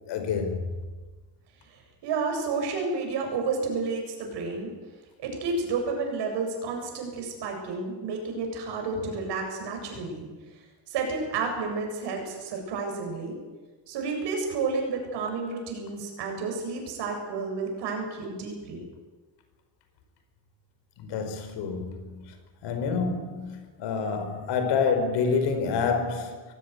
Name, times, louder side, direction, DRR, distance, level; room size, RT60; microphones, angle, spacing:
voice 1, 0.1-0.6 8.9-9.1 9.9-10.0 21.0-22.3 22.6-26.4, left 5 dB, 80° left, 5.0 m, -28 dB
voice 2, 2.0-4.7 5.2-10.3 10.9-13.4 13.9-18.9, right 4 dB, 80° right, 7.9 m, -31 dB
24.0 x 16.5 x 9.8 m
cardioid pair, 140°, 41 cm